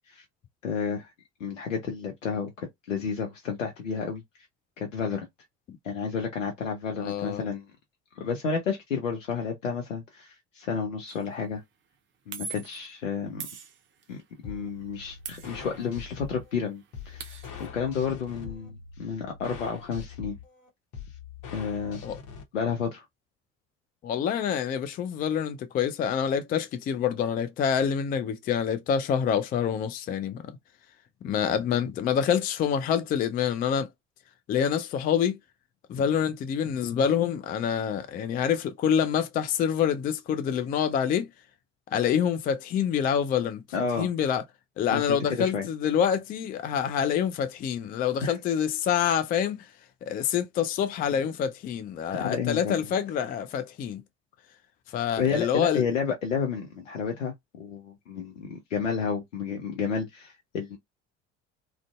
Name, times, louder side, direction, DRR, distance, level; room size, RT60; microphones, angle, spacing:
voice 1, 0.6-1.1 1.4-4.2 4.8-5.3 5.8-7.6 8.2-11.6 12.3-13.5 14.1-17.4 17.7-20.4 21.5-22.0 22.5-23.0 43.7-44.1 44.9-45.7 48.2-48.4 52.1-52.8 55.2-60.8, left 6 dB, 80° left, 0.6 m, -31 dB
voice 2, 7.0-7.4 22.0-22.2 24.0-30.5 31.2-33.9 34.5-35.4 35.9-41.3 41.9-43.6 44.0-44.4 44.8-49.7 50.0-54.0 54.9-55.9, left 8 dB, 25° left, 0.4 m, -26 dB
sound 1, 11.1-11.3 12.3-12.9 13.4-14.2 15.2-16.1 16.4-16.5 16.8-17.7, right 5 dB, 30° right, 0.6 m, -42 dB
sound 2, 14.4-22.4, left 6 dB, 55° left, 0.9 m, -43 dB
2.4 x 2.2 x 2.3 m
figure-of-eight pair, 60°, 37 cm